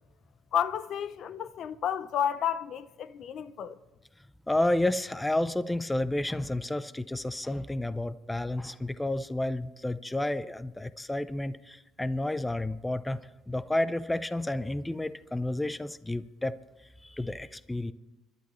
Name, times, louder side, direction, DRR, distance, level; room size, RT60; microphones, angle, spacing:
voice 1, 0.5-3.8, left 9 dB, 55° left, 0.6 m, -31 dB
voice 2, 4.5-13.2 13.5-16.5 17.0-17.9, left 1 dB, 10° left, 0.5 m, -31 dB
29.0 x 12.0 x 3.1 m
supercardioid pair, 95°, 0 cm